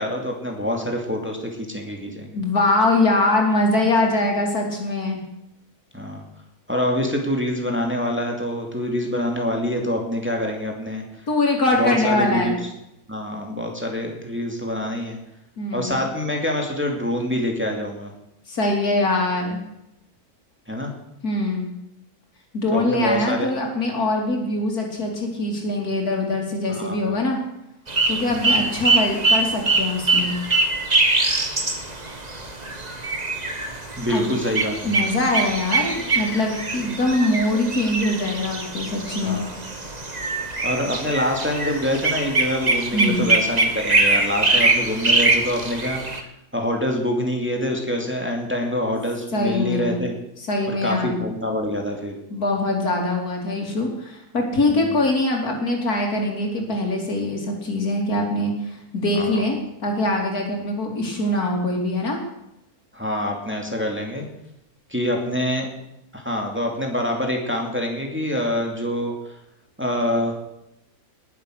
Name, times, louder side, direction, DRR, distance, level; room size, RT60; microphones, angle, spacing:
voice 1, 0.0-2.4 5.9-6.2 6.7-11.0 11.7-12.6 13.1-15.2 15.7-18.1 20.7-20.9 22.7-23.5 26.7-27.2 28.3-28.7 34.0-35.1 39.2-39.4 40.6-50.2 50.7-52.2 54.7-55.0 59.1-59.4 62.9-64.3 64.9-65.7 66.1-69.3 69.8-70.4, left 1 dB, 5° right, 1 dB, 2.5 m, -26 dB
voice 2, 2.3-5.2 11.3-12.6 15.6-16.0 18.5-19.6 21.2-21.7 22.5-27.4 28.1-30.4 34.1-34.2 34.8-39.4 42.9-43.3 49.3-50.0 50.5-51.2 52.3-59.6 59.8-62.2, left 2 dB, 80° left, 1 dB, 3.6 m, -23 dB
sound 1, 27.9-46.2, right 3 dB, 30° right, 1.5 m, -23 dB
20.0 x 8.2 x 6.4 m, 0.85 s
omnidirectional pair, 1.6 m